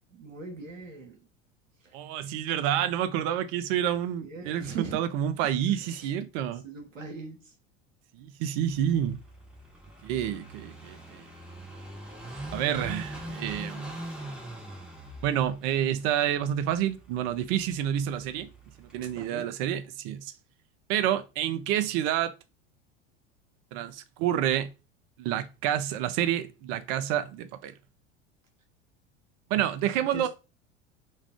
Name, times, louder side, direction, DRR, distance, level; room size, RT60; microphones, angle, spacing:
voice 1, 0.1-1.2 1.8-2.0 4.2-5.1 5.7-6.1 6.6-7.5 19.1-19.5 30.0-30.3, right 5 dB, 90° right, 0.7 m, -40 dB
voice 2, 1.9-6.6 8.1-9.2 10.0-11.2 12.5-13.9 15.2-18.5 18.8-20.3 20.9-22.3 23.7-24.7 25.2-27.7 29.5-30.3, right 10 dB, 40° right, 0.4 m, -28 dB
Car passing by / Idling, 8.6-19.3, right 1 dB, ahead, 0.6 m, -43 dB
2.4 x 2.3 x 3.4 m
figure-of-eight pair, 80°, 38 cm